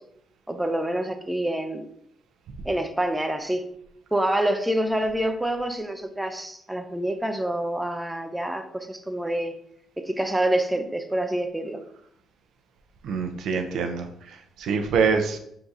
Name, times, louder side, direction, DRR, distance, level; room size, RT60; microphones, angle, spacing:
voice 1, 0.5-1.8 2.7-3.7 4.1-9.6 10.0-11.8, right 1 dB, 10° right, 6 dB, 0.5 m, -27 dB
voice 2, 13.0-15.4, right 5 dB, 75° right, 6 dB, 0.6 m, -25 dB
4.5 x 3.7 x 2.7 m, 0.71 s
cardioid pair, 90°, 0 cm